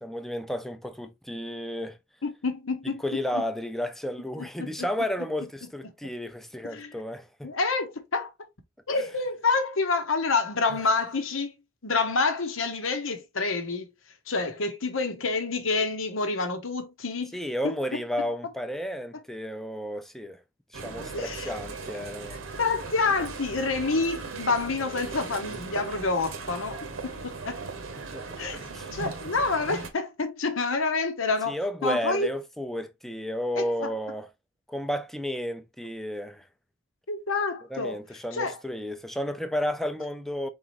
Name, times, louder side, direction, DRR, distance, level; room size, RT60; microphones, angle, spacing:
voice 1, 0.0-2.0 3.0-7.5 17.3-20.4 20.7-22.4 28.0-28.3 28.5-28.9 31.5-34.3 34.7-36.5 37.7-40.5, equal, ahead, 0.5 m, -32 dB
voice 2, 2.2-3.0 3.3-3.4 4.4-4.9 6.6-7.0 7.4-8.3 8.9-11.6 11.8-13.9 14.3-17.4 17.6-17.7 21.1-21.6 22.3-27.6 28.4-28.6 28.9-32.3 33.5-33.9 37.1-38.0 38.3-38.6, left 3 dB, 85° left, 1.0 m, -28 dB
sound 1, 20.7-29.9, right 4 dB, 85° right, 0.9 m, -38 dB
4.7 x 3.7 x 2.9 m
head